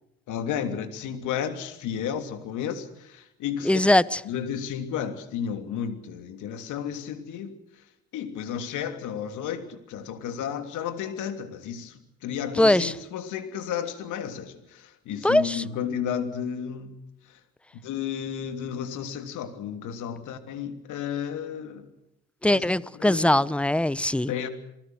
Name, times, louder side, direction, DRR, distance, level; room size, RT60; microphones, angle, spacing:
voice 1, 0.3-3.9 4.2-7.5 8.1-17.0 17.3-17.4 17.7-21.9 22.5-23.4 24.3-24.5, left 8 dB, 65° left, 3.0 m, -33 dB
voice 2, 3.6-4.2 12.6-12.9 15.2-15.6 22.4-24.3, left 1 dB, 5° left, 0.9 m, -21 dB
28.0 x 19.5 x 6.3 m
hypercardioid pair, 60°, 32 cm